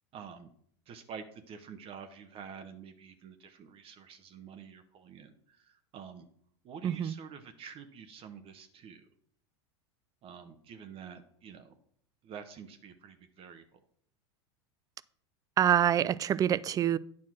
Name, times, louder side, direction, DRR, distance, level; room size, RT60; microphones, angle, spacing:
voice 1, 0.1-0.5 0.9-6.2 6.6-9.0 10.2-11.7 12.2-13.6, right 7 dB, 40° right, 1.0 m, -48 dB
voice 2, 6.8-7.1 15.6-17.0, right 10 dB, 25° right, 0.3 m, -26 dB
9.5 x 4.2 x 6.1 m
hypercardioid pair, 110°, 15 cm